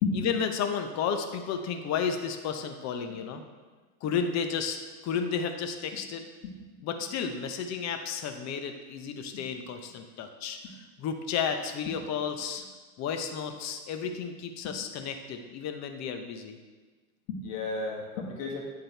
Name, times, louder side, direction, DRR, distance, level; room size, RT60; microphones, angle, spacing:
voice 1, 0.1-3.4 4.0-4.8 5.0-6.2 6.8-12.6 13.0-16.6, left 6 dB, 40° left, 6 dB, 0.8 m, -32 dB
voice 2, 17.3-18.6, left 5 dB, 60° left, -1 dB, 1.7 m, -32 dB
10.0 x 3.8 x 4.5 m, 1.3 s
hypercardioid pair, 105°, 44 cm